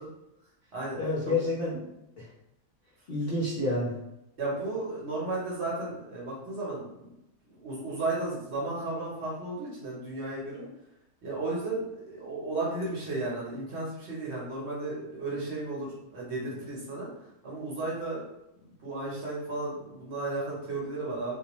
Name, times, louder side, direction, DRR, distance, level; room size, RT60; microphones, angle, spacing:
voice 1, 1.0-2.3 3.1-3.9, left 2 dB, 60° left, -7 dB, 0.6 m, -29 dB
voice 2, 4.4-7.1 7.6-10.7 11.2-18.2 18.5-21.3, right 2 dB, 55° right, -5 dB, 1.0 m, -34 dB
2.5 x 2.3 x 2.9 m, 0.87 s
omnidirectional pair, 1.6 m